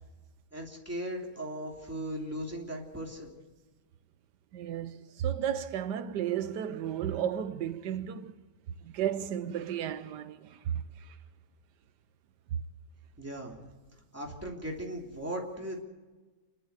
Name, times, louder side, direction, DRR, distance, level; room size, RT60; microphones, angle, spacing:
voice 1, 0.5-3.3 13.2-13.7 14.1-15.8, right 1 dB, 10° right, 3.1 m, -38 dB
voice 2, 4.5-8.3 8.8-11.1, right 9 dB, 90° right, 1.4 m, -33 dB
28.0 x 11.5 x 8.1 m
omnidirectional pair, 1.8 m